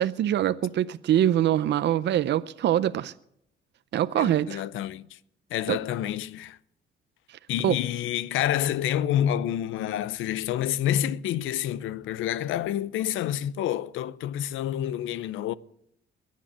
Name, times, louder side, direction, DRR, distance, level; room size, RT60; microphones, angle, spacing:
voice 1, 0.0-3.1 3.9-4.6 5.7-5.8 7.3-7.8, right 11 dB, 60° right, 0.6 m, -24 dB
voice 2, 4.2-5.1 5.5-6.6 7.5-15.5, left 11 dB, 85° left, 0.6 m, -28 dB
22.0 x 7.5 x 7.4 m
cardioid pair, 90°, 20 cm